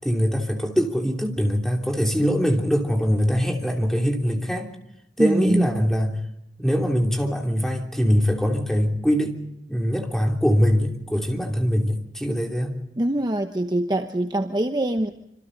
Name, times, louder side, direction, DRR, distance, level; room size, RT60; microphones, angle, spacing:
voice 1, 0.0-4.7 5.2-6.2 6.6-9.4 9.7-12.7, equal, ahead, 2 dB, 3.0 m, -22 dB
voice 2, 5.2-5.7 13.0-15.1, right 1 dB, 25° right, 6 dB, 0.9 m, -23 dB
27.0 x 26.5 x 4.0 m, 0.82 s
head